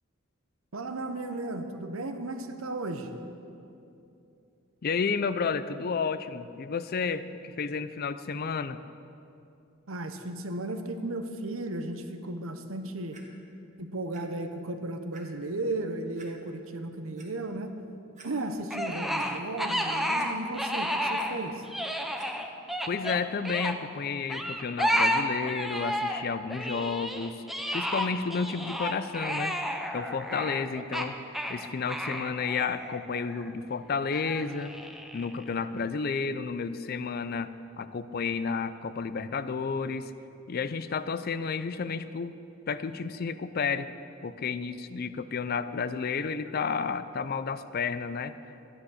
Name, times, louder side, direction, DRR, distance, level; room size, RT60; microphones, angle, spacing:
voice 1, 0.7-3.1 9.9-13.2 13.8-17.7 18.2-21.6, right 2 dB, 80° right, 7 dB, 1.0 m, -35 dB
voice 2, 4.8-8.8 22.9-27.4 27.7-29.6 29.9-31.2 31.5-34.7 35.1-40.1 40.5-42.3 42.7-43.9 44.2-48.3, left 5 dB, 50° left, 13 dB, 0.4 m, -31 dB
Clock, 13.1-13.2 14.1-14.2 14.7-14.8 15.1-15.2 16.2-16.3 16.9-17.3 17.8-17.9 18.2-18.3 18.7-19.3 20.2-20.7 20.9-21.3 22.2-22.3 23.0-23.1, right 4 dB, 35° right, 1.6 m, -52 dB
sound 1, 18.7-21.4 21.6-23.7 24.3-26.2 26.5-33.5 34.1-35.4, equal, ahead, 0.7 m, -31 dB
13.0 x 10.0 x 6.4 m, 2.7 s
head